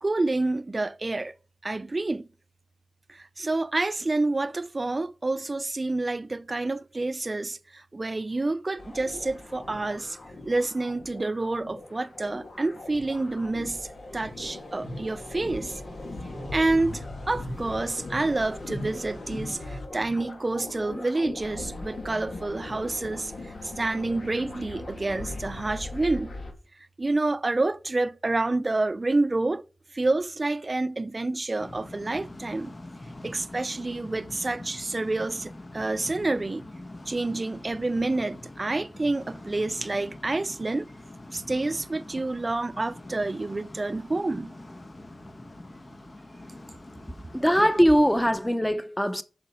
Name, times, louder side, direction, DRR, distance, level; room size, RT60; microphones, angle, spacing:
voice 1, 0.0-1.4 1.6-2.3 3.1-10.2 10.4-15.8 16.5-26.3 27.0-29.6 29.9-32.7 33.2-36.6 37.1-40.9 41.3-44.5, right 2 dB, 40° right, 0.5 m, -28 dB
sound 1, 8.8-26.5, left 2 dB, 75° left, 2.1 m, -39 dB
sound 2, 31.6-48.3, left 1 dB, 45° left, 1.2 m, -44 dB
voice 2, 47.3-49.2, equal, 5° left, 0.9 m, -21 dB
7.6 x 5.8 x 4.5 m
cardioid pair, 55°, 0 cm